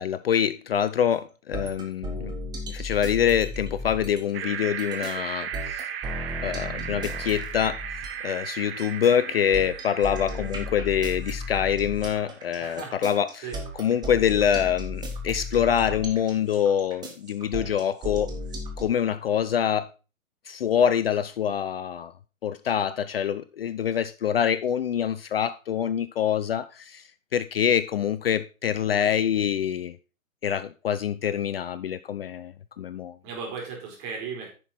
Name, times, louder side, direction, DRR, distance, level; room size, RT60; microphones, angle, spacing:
voice 1, 0.0-2.3 2.7-5.9 6.4-7.8 8.2-13.5 13.8-18.3 18.8-19.9 20.5-22.1 22.4-27.0 27.3-30.0 30.4-33.2, left 9 dB, 45° left, 0.5 m, -25 dB
sound 1, 1.5-8.3 8.8-18.8, left 1 dB, 10° right, 1.4 m, -35 dB
sound 2, 4.3-12.5, right 8 dB, 45° right, 1.2 m, -36 dB
voice 2, 12.5-13.6 33.2-34.5, right 5 dB, 30° right, 4.0 m, -37 dB
10.0 x 6.1 x 4.2 m
hypercardioid pair, 135°, 41 cm